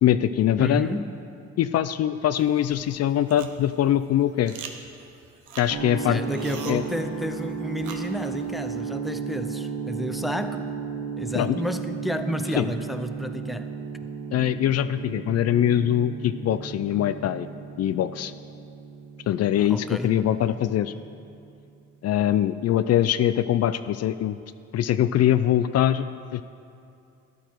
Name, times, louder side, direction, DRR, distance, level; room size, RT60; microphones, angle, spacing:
voice 1, 0.0-1.0 1.6-4.6 5.6-6.2 6.7-6.8 11.4-11.6 12.6-12.7 14.3-17.5 17.8-18.3 19.3-20.9 22.0-24.4 24.7-26.4, left 11 dB, 55° left, 13 dB, 0.4 m, -23 dB
voice 2, 0.6-1.2 6.0-10.7 11.2-13.7 16.9-17.0 19.6-20.2, equal, ahead, 8 dB, 0.5 m, -31 dB
sound 1, 2.3-8.8, right 6 dB, 80° right, 1.0 m, -45 dB
sound 2, 5.7-21.6, right 6 dB, 60° right, 1.4 m, -35 dB
13.0 x 10.0 x 4.5 m, 2.5 s
cardioid pair, 90°, 30 cm